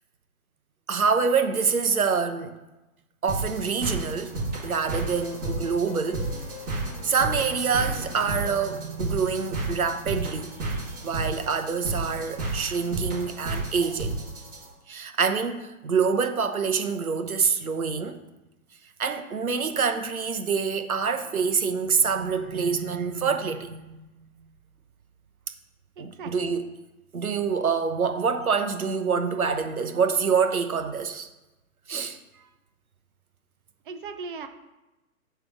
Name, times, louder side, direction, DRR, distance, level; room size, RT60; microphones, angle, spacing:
voice 1, 0.9-2.5 3.2-6.3 7.0-14.1 14.9-18.2 19.0-24.1 26.0-26.7 27.1-31.3 31.9-32.2, right 5 dB, 80° right, 8 dB, 1.1 m, -26 dB
sound 1, 3.3-14.6, right 2 dB, 20° right, 2.8 m, -32 dB
sound 2, 5.2-8.8, left 8 dB, 30° left, 0.5 m, -43 dB
voice 2, 26.0-26.5 33.8-34.5, right 4 dB, 35° right, 7 dB, 0.8 m, -38 dB
8.5 x 3.5 x 6.2 m, 1.0 s
figure-of-eight pair, 130°, 43 cm